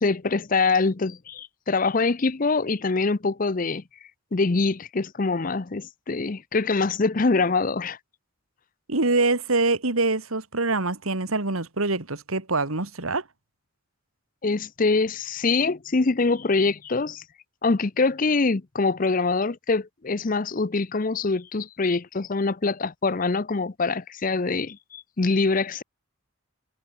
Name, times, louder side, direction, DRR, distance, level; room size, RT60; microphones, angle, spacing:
voice 1, 0.0-3.8 4.3-8.0 14.4-17.2 17.6-25.8, left 3 dB, 40° left, 0.6 m, -24 dB
voice 2, 8.9-13.2, right 3 dB, 90° right, 2.6 m, -24 dB
head